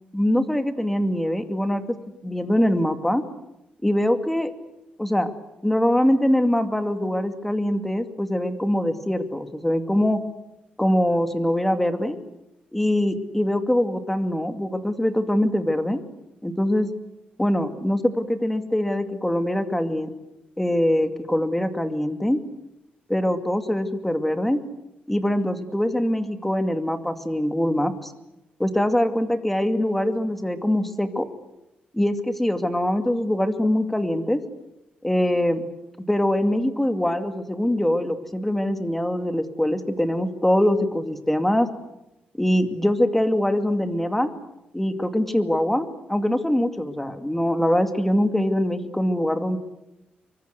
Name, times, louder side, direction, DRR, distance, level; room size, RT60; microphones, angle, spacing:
voice 1, 0.1-2.0 2.2-3.2 3.8-4.5 5.0-5.3 5.6-10.2 10.8-12.2 12.7-16.0 16.4-16.9 17.4-20.1 20.6-22.4 23.1-24.6 25.1-28.1 28.6-31.3 31.9-34.4 35.0-35.7 36.1-41.7 42.4-44.3 44.7-49.6, left 1 dB, 5° left, 8 dB, 2.4 m, -23 dB
25.0 x 24.0 x 8.1 m, 0.90 s
cardioid pair, 120°, 3 cm